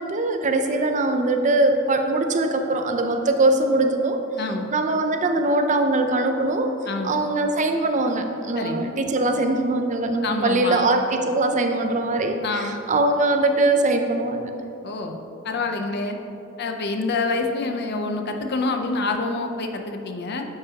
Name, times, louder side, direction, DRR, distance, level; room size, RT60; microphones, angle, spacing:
voice 1, 0.0-4.3 4.7-6.7 7.0-14.5, right 2 dB, 35° right, 5 dB, 0.5 m, -22 dB
voice 2, 6.9-7.2 8.6-8.9 10.2-10.9 12.4-12.8 14.8-15.2 15.4-16.2 16.6-20.5, left 3 dB, 50° left, 5 dB, 0.6 m, -27 dB
9.8 x 7.4 x 2.9 m, 2.8 s
head